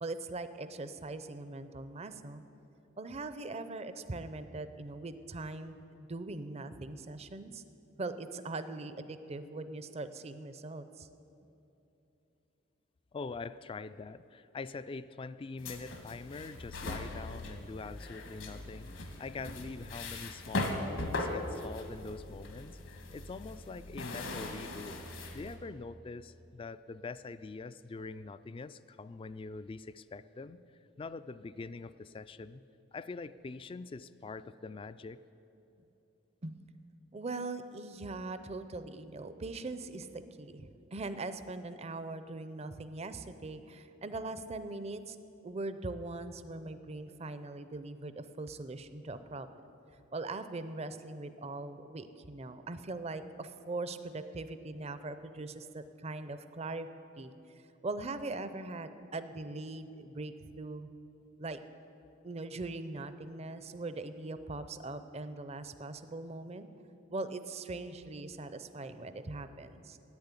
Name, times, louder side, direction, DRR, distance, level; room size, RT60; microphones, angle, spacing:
voice 1, 0.0-2.4 3.0-7.6 8.0-11.1 36.4-36.6 37.1-45.2 45.4-49.5 50.1-56.9 57.2-57.3 57.8-60.9 61.4-61.6 62.2-66.7 67.1-70.0, right 2 dB, 30° right, 11 dB, 0.5 m, -41 dB
voice 2, 13.1-22.8 23.1-25.0 25.3-30.6 31.0-32.6 32.9-35.2, left 3 dB, 25° left, 14 dB, 0.3 m, -44 dB
sound 1, 15.6-25.6, left 2 dB, 75° left, 1.6 m, -40 dB
10.5 x 8.7 x 9.7 m, 3.0 s
head